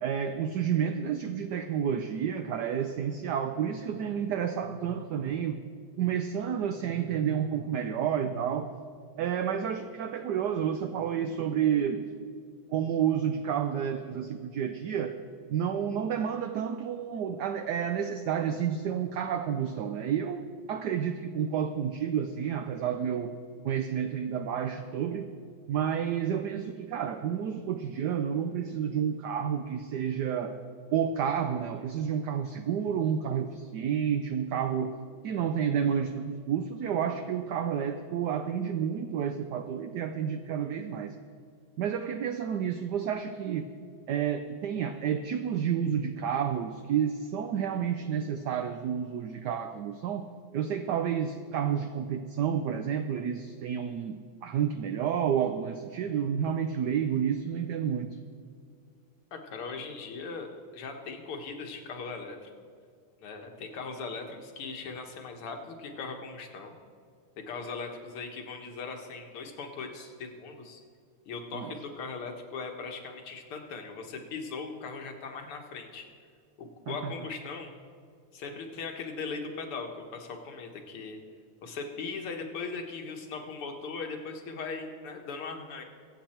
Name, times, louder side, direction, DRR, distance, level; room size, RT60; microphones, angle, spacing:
voice 1, 0.0-5.6 6.0-8.8 9.2-12.1 12.7-15.2 15.5-23.4 23.6-25.3 25.7-30.6 30.9-34.9 35.2-41.1 41.8-43.7 44.1-50.3 50.5-58.2 71.5-71.8 76.9-77.1, right 8 dB, 70° right, 7 dB, 1.0 m, -30 dB
voice 2, 59.3-60.5 60.7-62.5 63.2-66.7 67.4-70.8 71.3-76.1 76.6-77.7 78.3-81.2 81.6-85.8, left 4 dB, 80° left, 3 dB, 2.3 m, -39 dB
23.5 x 8.1 x 4.4 m, 2.2 s
omnidirectional pair, 2.4 m